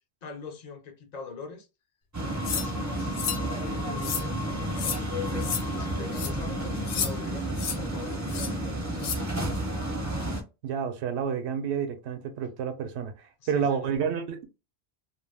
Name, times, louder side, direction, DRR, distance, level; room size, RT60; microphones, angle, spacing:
voice 1, 0.2-1.7 2.2-7.5 7.8-9.2 13.4-13.9, left 4 dB, 50° left, 0.5 m, -43 dB
sound 1, 2.1-10.4, right 1 dB, 25° right, 0.4 m, -31 dB
sound 2, 2.4-2.7 3.1-3.4 4.0-4.3 4.8-5.0 5.4-5.6 6.1-6.3 6.9-7.1 7.6-7.8 8.3-8.5 9.0-9.2, left 7 dB, 75° left, 0.8 m, -31 dB
voice 2, 10.6-14.4, right 7 dB, 80° right, 0.9 m, -30 dB
2.3 x 2.2 x 3.2 m
omnidirectional pair, 1.1 m